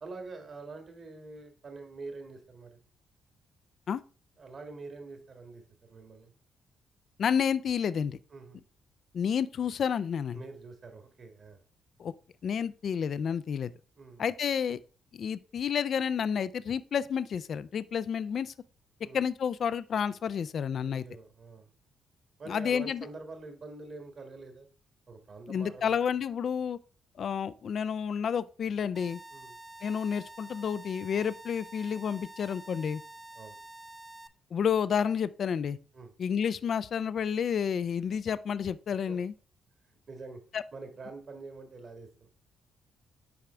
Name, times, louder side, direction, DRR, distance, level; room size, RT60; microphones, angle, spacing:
voice 1, 0.0-2.8 4.4-6.3 8.3-8.6 10.3-11.6 14.0-14.3 19.0-19.2 20.9-21.7 22.4-24.7 25.1-26.0 29.3-29.6 33.3-33.6 35.9-36.1 39.1-39.2 40.1-40.4 40.7-42.3, right 3 dB, 55° right, 1.8 m, -45 dB
voice 2, 7.2-8.2 9.1-10.4 12.0-12.1 12.4-13.7 14.2-14.8 15.1-18.5 19.1-21.0 22.5-23.0 25.5-26.8 27.2-29.2 29.8-33.0 34.5-35.8 36.2-39.3 40.5-40.6, left 7 dB, 60° left, 0.3 m, -30 dB
sound 1, 28.9-34.3, right 1 dB, 15° right, 0.7 m, -48 dB
7.0 x 4.8 x 3.2 m
supercardioid pair, 55°, 0 cm